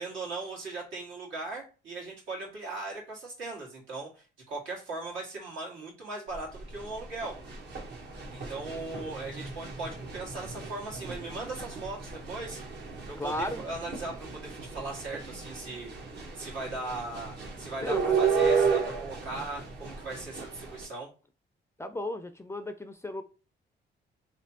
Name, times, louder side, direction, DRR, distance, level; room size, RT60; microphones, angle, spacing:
voice 1, 0.0-7.4 8.3-12.6 13.1-15.9 16.3-21.1, right 3 dB, 80° right, 1.7 m, -39 dB
sound 1, 6.3-20.9, right 6 dB, 60° right, 1.0 m, -33 dB
voice 2, 13.2-13.6 17.8-18.2 21.8-23.2, left 1 dB, 15° left, 0.3 m, -35 dB
3.1 x 3.0 x 2.8 m
cardioid pair, 90°, 20 cm